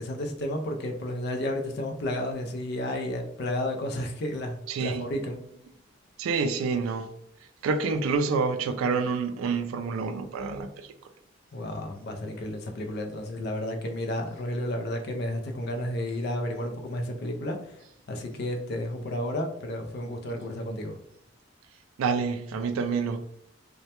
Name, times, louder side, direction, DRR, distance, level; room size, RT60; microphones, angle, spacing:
voice 1, 0.0-5.4 11.5-17.8 18.1-21.0, left 1 dB, 50° left, 0.3 m, -32 dB
voice 2, 4.7-5.1 6.2-7.1 7.6-10.9 22.0-23.2, right 4 dB, 75° right, 0.3 m, -28 dB
2.1 x 2.0 x 2.8 m
head